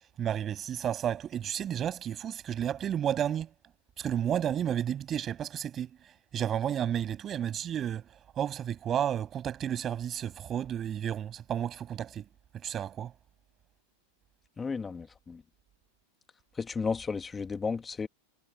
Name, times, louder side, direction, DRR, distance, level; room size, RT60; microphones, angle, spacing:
voice 1, 0.2-3.5 4.0-5.9 6.3-12.3 12.6-13.1, right 9 dB, 30° right, 6.7 m, -32 dB
voice 2, 14.6-15.4 16.6-18.1, left 5 dB, 15° left, 1.8 m, -33 dB
hypercardioid pair, 110°, 0 cm